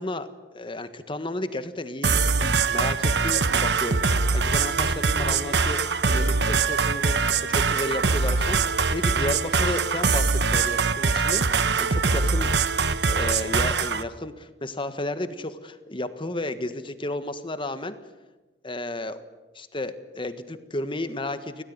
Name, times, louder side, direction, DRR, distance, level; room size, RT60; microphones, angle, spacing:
voice 1, 0.0-12.5 13.0-18.0 18.6-19.2 19.5-21.6, left 1 dB, 30° left, 10 dB, 1.5 m, -33 dB
sound 1, 2.0-14.0, right 4 dB, 75° right, 1.1 m, -23 dB
26.0 x 17.5 x 9.6 m, 1.2 s
head